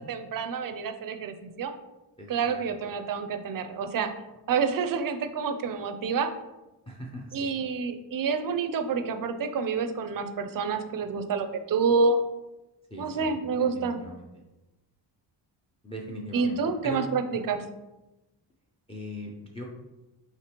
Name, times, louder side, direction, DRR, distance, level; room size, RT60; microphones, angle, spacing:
voice 1, 0.1-1.7 2.3-4.1 4.5-6.3 7.3-12.2 13.0-14.0 16.3-17.6, right 5 dB, 50° right, 8 dB, 0.4 m, -28 dB
voice 2, 2.2-2.6 6.9-7.5 12.9-13.4 13.7-14.2 15.8-17.0 18.9-19.6, equal, 15° left, -1 dB, 0.5 m, -40 dB
5.0 x 3.0 x 2.9 m, 1.0 s
wide cardioid pair, 135°, 44 cm